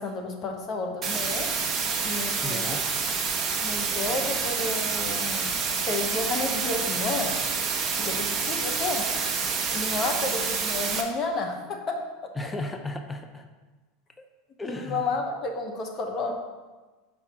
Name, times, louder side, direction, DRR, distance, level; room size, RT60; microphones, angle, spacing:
voice 1, 0.0-1.5 2.0-2.7 3.6-7.4 8.0-9.1 9.7-12.0 14.6-16.3, left 3 dB, 40° left, 3 dB, 0.9 m, -31 dB
sound 1, 1.0-11.0, right 5 dB, 30° right, 0.9 m, -28 dB
voice 2, 2.4-2.9 12.4-13.5 14.6-15.0, left 2 dB, 15° left, 6 dB, 0.6 m, -34 dB
4.8 x 4.4 x 5.9 m, 1.3 s
supercardioid pair, 115°, 0 cm